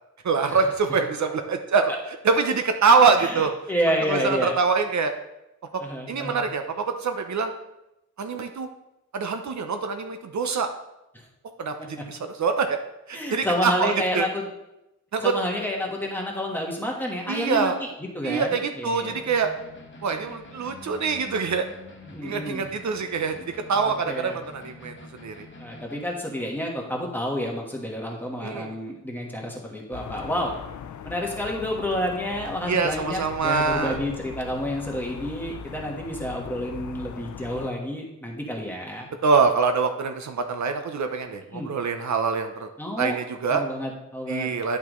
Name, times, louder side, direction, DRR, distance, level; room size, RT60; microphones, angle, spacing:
voice 1, 0.2-1.9 2.2-3.5 4.1-5.1 5.7-5.8 6.1-7.5 8.2-8.7 9.1-10.7 11.6-12.8 13.1-14.3 15.1-15.3 17.3-17.8 18.2-19.5 20.0-21.7 22.2-25.5 28.4-28.8 32.7-34.0 39.2-42.7 43.0-43.6 44.3-44.8, right 5 dB, 60° right, 6 dB, 0.7 m, -24 dB
voice 2, 3.2-4.5 5.8-6.4 11.1-11.3 11.8-12.0 13.1-14.4 15.2-17.9 18.1-19.2 22.1-22.7 23.8-24.4 25.6-30.5 31.0-39.1 41.5-41.7 42.8-43.2 43.5-44.5, equal, 5° left, -1 dB, 1.3 m, -29 dB
sound 1, 19.1-26.1, left 3 dB, 40° left, 1.1 m, -46 dB
sound 2, 29.9-37.7, left 8 dB, 65° left, 0.5 m, -40 dB
10.5 x 5.9 x 3.1 m, 0.90 s
wide cardioid pair, 175°, 31 cm